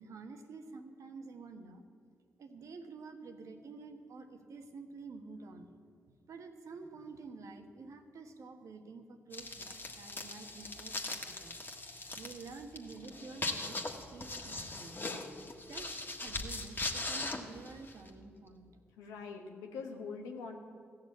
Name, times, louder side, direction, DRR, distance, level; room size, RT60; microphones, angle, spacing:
voice 1, 0.0-1.8 2.4-5.7 6.1-11.6 12.1-13.8 14.1-15.0 15.7-18.7, right 4 dB, 65° right, 6 dB, 1.2 m, -49 dB
sound 1, 9.3-18.1, left 2 dB, 35° left, 1.6 m, -40 dB
voice 2, 19.0-20.6, left 5 dB, 85° left, 3 dB, 1.2 m, -43 dB
15.0 x 6.7 x 8.4 m, 2.3 s
hypercardioid pair, 45°, 6 cm